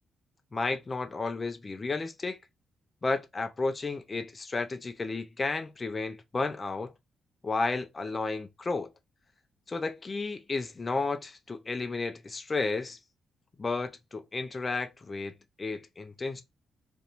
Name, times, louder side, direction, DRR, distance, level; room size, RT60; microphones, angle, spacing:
voice 1, 0.5-2.4 3.0-6.9 7.4-8.9 9.7-13.0 13.6-16.4, left 3 dB, 25° left, 0.4 m, -32 dB
2.5 x 2.1 x 2.9 m
cardioid pair, 130°, 0 cm